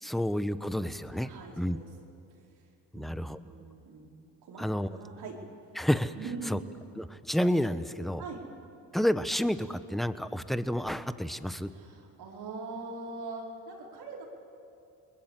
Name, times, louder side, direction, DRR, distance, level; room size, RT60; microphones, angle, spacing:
voice 1, 0.0-1.3 1.6-1.8 2.9-3.4 4.6-4.9 5.8-6.1 6.5-6.6 7.0-8.2 8.9-11.7, equal, ahead, 12 dB, 1.0 m, -30 dB
voice 2, 1.2-1.9 2.5-2.7 2.9-5.4 6.1-6.6 8.2-8.4 11.7-14.2, right 3 dB, 75° right, -1 dB, 4.8 m, -42 dB
29.0 x 20.5 x 7.6 m, 2.6 s
supercardioid pair, 70°, 39 cm